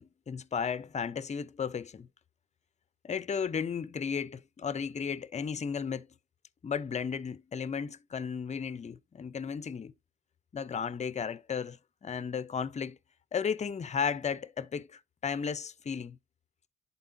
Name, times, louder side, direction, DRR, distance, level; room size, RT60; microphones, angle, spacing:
voice 1, 0.0-2.1 3.0-6.1 6.6-9.9 10.5-13.0 13.3-16.2, left 6 dB, 25° left, 0.5 m, -34 dB
11.0 x 4.1 x 2.6 m
cardioid pair, 90°, 30 cm